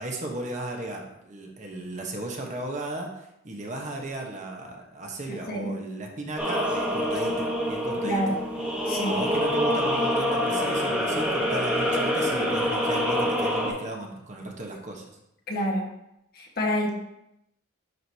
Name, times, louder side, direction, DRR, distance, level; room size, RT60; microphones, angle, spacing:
voice 1, 0.0-8.4 9.1-15.0, right 2 dB, 35° right, 1 dB, 1.1 m, -35 dB
voice 2, 5.3-5.8 8.0-8.4 8.9-9.2 15.5-15.9 16.3-16.9, equal, 45° left, -1 dB, 1.4 m, -28 dB
sound 1, 6.4-13.7, equal, 5° right, 1.2 m, -26 dB
10.5 x 5.0 x 2.8 m, 0.82 s
head